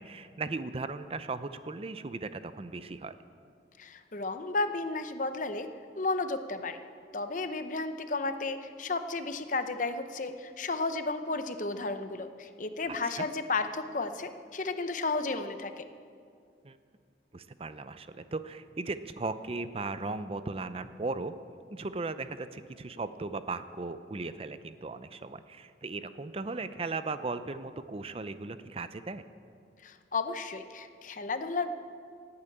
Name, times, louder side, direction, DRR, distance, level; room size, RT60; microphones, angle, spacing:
voice 1, 0.0-3.2 13.2-13.3 16.6-16.8 17.3-21.3 21.7-29.3, right 3 dB, 30° right, 12 dB, 0.5 m, -37 dB
voice 2, 3.8-5.7 6.0-6.8 7.1-15.8 29.8-31.7, left 3 dB, 45° left, 9 dB, 0.8 m, -33 dB
17.5 x 8.8 x 8.5 m, 2.3 s
head